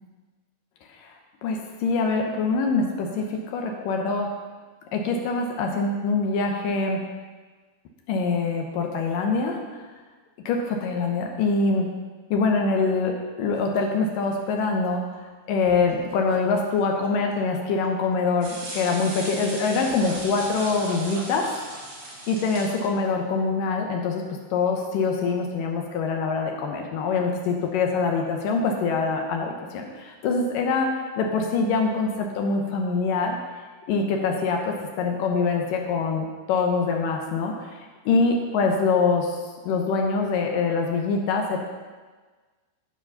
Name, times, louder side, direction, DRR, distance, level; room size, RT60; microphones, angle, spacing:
voice 1, 1.4-4.3 4.9-7.0 8.1-9.6 10.5-11.9 12.3-15.1 15.5-21.5 22.3-24.3 24.5-30.9 31.2-33.4 33.9-39.4 39.7-41.6, left 4 dB, 75° left, 2 dB, 2.1 m, -24 dB
sound 1, 13.5-14.9 15.1-15.2 15.6-17.9 18.1-18.2 19.2-23.6, right 3 dB, 75° right, 2.9 m, -44 dB
sound 2, 18.4-22.9, right 1 dB, 50° right, 2.9 m, -38 dB
13.0 x 4.8 x 5.5 m, 1.4 s
omnidirectional pair, 4.7 m